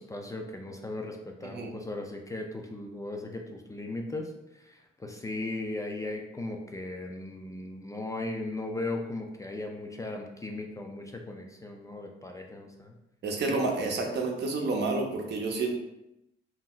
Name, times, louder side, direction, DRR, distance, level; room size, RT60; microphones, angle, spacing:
voice 1, 0.0-12.9 13.5-13.6, left 2 dB, 15° left, 2 dB, 0.4 m, -37 dB
voice 2, 1.4-1.7 13.2-15.7, right 3 dB, 60° right, 2 dB, 0.6 m, -29 dB
2.7 x 2.0 x 3.7 m, 0.89 s
cardioid pair, 90°, 20 cm